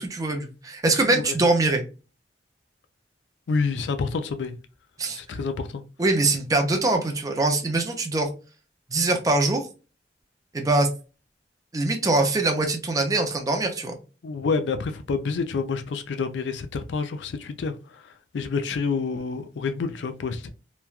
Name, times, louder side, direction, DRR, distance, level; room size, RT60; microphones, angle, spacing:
voice 1, 0.0-1.8 5.0-5.2 6.0-8.3 8.9-9.7 10.5-10.9 11.7-14.0, right 2 dB, 20° right, 0.5 m, -23 dB
voice 2, 1.0-1.3 3.5-4.5 5.1-5.8 14.2-17.7 18.3-20.5, left 4 dB, 90° left, 0.4 m, -28 dB
3.0 x 2.2 x 2.3 m
head